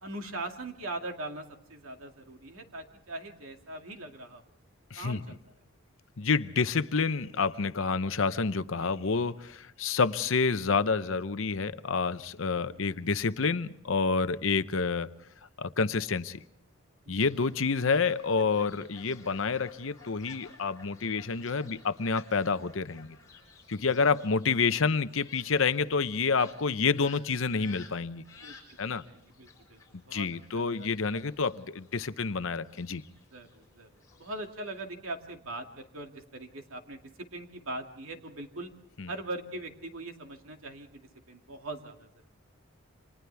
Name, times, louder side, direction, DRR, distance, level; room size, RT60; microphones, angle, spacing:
voice 1, 0.0-4.4 4.9-5.4 8.8-8.9 12.5-12.8 17.2-17.3 24.0-24.1 28.4-28.5 28.8-29.8 30.1-30.3 30.5-31.2 33.3-38.7 39.1-42.3, right 2 dB, 75° right, 2.4 m, -41 dB
voice 2, 6.2-15.1 15.6-16.4 17.1-23.2 23.7-28.2 28.8-29.0 29.9-33.0 39.0-39.1, left 4 dB, 65° left, 0.8 m, -28 dB
Fowl, 17.2-34.8, left 5 dB, 15° left, 5.0 m, -56 dB
29.5 x 26.0 x 3.5 m
head